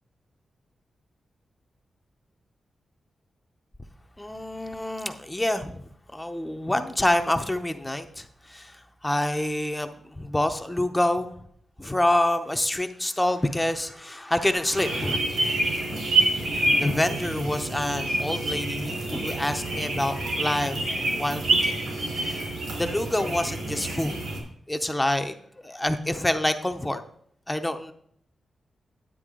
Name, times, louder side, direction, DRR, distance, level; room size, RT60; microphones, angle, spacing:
voice 1, 4.2-5.8 6.1-11.4 11.8-15.2 16.5-21.7 22.1-22.5 22.8-24.2 24.7-27.0 27.5-27.9, left 1 dB, 10° left, 7 dB, 0.6 m, -27 dB
sound 1, 14.8-24.4, right 2 dB, 85° right, 3.5 m, -27 dB
9.9 x 8.7 x 3.7 m, 0.67 s
wide cardioid pair, 135°, 0 cm